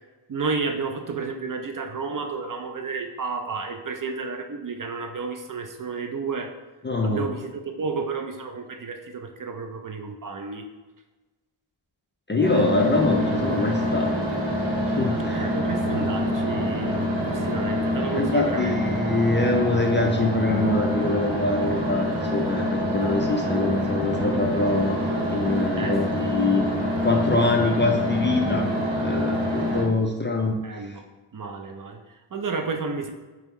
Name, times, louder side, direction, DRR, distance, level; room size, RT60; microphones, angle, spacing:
voice 1, 0.3-6.5 7.0-10.7 15.3-18.8 25.8-26.0 28.7-28.8 30.6-31.0 31.3-33.1, right 4 dB, 45° right, 4 dB, 0.4 m, -31 dB
voice 2, 6.8-7.3 12.3-14.1 14.8-15.5 18.1-25.0 25.3-26.7 27.0-28.7 29.0-31.0, left 2 dB, 25° left, 1 dB, 0.3 m, -24 dB
sound 1, 12.4-29.8, equal, 70° right, 1.1 m, -26 dB
3.5 x 2.9 x 3.5 m, 1.2 s
wide cardioid pair, 65°, 48 cm